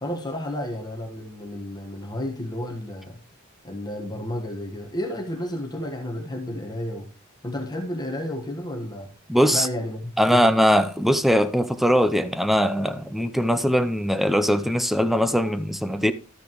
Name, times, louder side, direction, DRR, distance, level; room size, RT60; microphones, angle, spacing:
voice 1, 0.0-3.2 3.6-7.1 7.4-9.1 9.5-10.5, left 1 dB, 20° left, 1.4 m, -31 dB
voice 2, 9.3-9.7 10.2-16.1, equal, ahead, 0.6 m, -21 dB
13.0 x 8.2 x 3.1 m
head